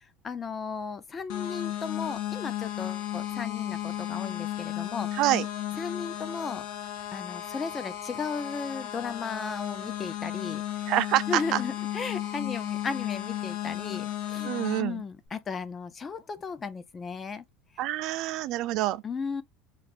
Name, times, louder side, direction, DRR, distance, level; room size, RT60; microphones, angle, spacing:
voice 1, 0.2-5.1 5.8-6.7 7.1-10.8 11.3-14.5 14.8-17.4 19.0-19.4, left 5 dB, 20° left, 0.4 m, -35 dB
sound 1, 1.3-14.8, left 12 dB, 70° left, 0.8 m, -34 dB
voice 2, 5.1-5.5 10.9-11.6 14.4-15.0 17.8-19.0, right 15 dB, 50° right, 0.3 m, -27 dB
3.2 x 2.5 x 4.1 m
cardioid pair, 150°, 0 cm